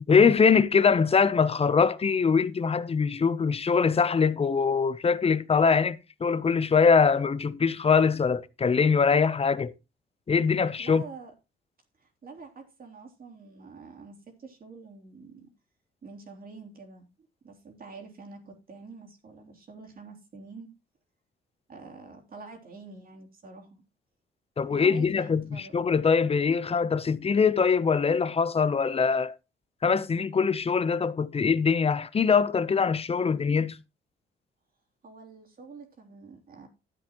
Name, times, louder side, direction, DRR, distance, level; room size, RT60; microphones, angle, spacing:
voice 1, 0.1-9.7 10.3-11.0 24.6-29.4 29.8-33.8, left 5 dB, 30° left, 0.7 m, -23 dB
voice 2, 10.8-11.3 12.0-15.5 16.0-17.1 17.4-20.7 21.7-23.8 24.7-25.7 35.0-36.7, right 4 dB, 45° right, 3.3 m, -46 dB
12.5 x 8.3 x 3.0 m
cardioid pair, 90°, 20 cm